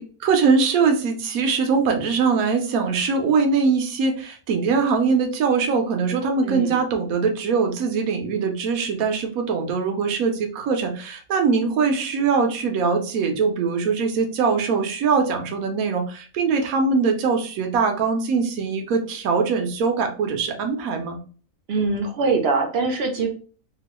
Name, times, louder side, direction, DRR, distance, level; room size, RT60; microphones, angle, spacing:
voice 1, 0.0-21.2, right 5 dB, 85° right, 4 dB, 1.1 m, -22 dB
voice 2, 6.4-6.8 21.7-23.3, right 4 dB, 60° right, 3 dB, 0.7 m, -23 dB
2.9 x 2.4 x 2.9 m, 0.40 s
omnidirectional pair, 1.4 m